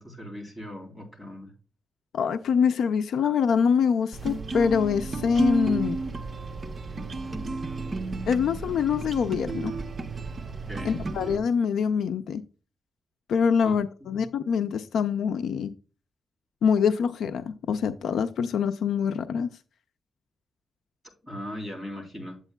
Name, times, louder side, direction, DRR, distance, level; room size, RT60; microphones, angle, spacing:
voice 1, 0.0-1.5 10.7-11.0 13.6-14.2 21.2-22.4, left 1 dB, 10° left, 3.2 m, -39 dB
voice 2, 2.1-6.0 8.3-9.7 10.8-12.4 13.3-15.7 16.6-19.5, left 6 dB, 90° left, 0.4 m, -25 dB
sound 1, 4.1-11.4, right 3 dB, 35° right, 0.8 m, -32 dB
8.8 x 8.1 x 2.2 m
wide cardioid pair, 125°, 0 cm